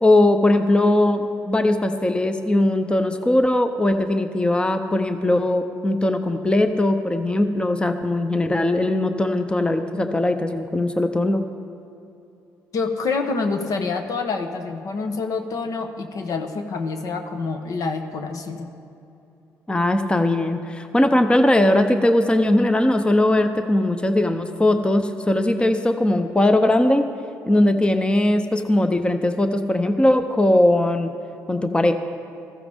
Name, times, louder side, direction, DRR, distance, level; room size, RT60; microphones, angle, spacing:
voice 1, 0.0-11.4 19.7-27.0 27.5-31.1 31.5-31.9, left 1 dB, 15° left, 7 dB, 0.7 m, -19 dB
voice 2, 12.7-18.7, left 4 dB, 65° left, 6 dB, 1.1 m, -27 dB
15.0 x 14.0 x 3.6 m, 2.8 s
supercardioid pair, 70°, 7 cm